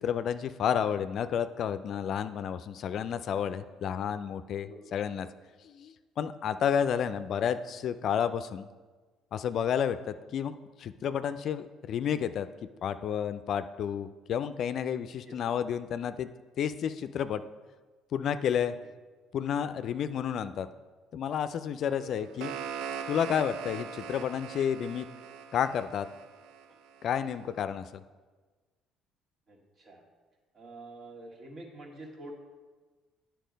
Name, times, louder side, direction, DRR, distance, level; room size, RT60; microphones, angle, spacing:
voice 1, 0.0-5.3 5.6-8.7 9.3-12.5 12.8-16.3 16.6-17.4 18.1-18.7 19.3-20.7 21.1-22.5 23.1-25.1 25.5-26.1 27.0-28.0, left 8 dB, 60° left, 11 dB, 0.3 m, -31 dB
voice 2, 22.0-22.5 29.5-30.0 30.5-32.3, right 1 dB, 45° right, 0 dB, 1.9 m, -47 dB
sound 1, 22.0-27.0, right 7 dB, 80° right, 0.4 m, -41 dB
9.0 x 4.5 x 5.2 m, 1.3 s
supercardioid pair, 75°, 0 cm